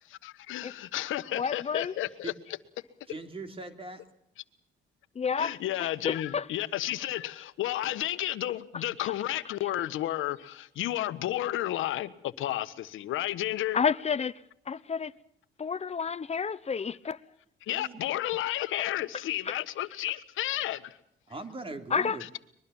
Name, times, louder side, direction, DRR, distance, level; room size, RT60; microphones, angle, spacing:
voice 1, 0.1-2.3 5.4-13.8 17.7-21.0, left 14 dB, 85° left, 1.3 m, -32 dB
voice 2, 1.3-1.9 5.1-6.5 13.7-14.3 14.7-15.1 15.6-17.2 19.4-19.5 21.9-22.2, left 6 dB, 35° left, 1.0 m, -30 dB
voice 3, 3.1-4.0 17.7-18.0 21.3-22.2, right 3 dB, 30° right, 3.2 m, -40 dB
23.0 x 22.5 x 7.2 m
cardioid pair, 90°, 20 cm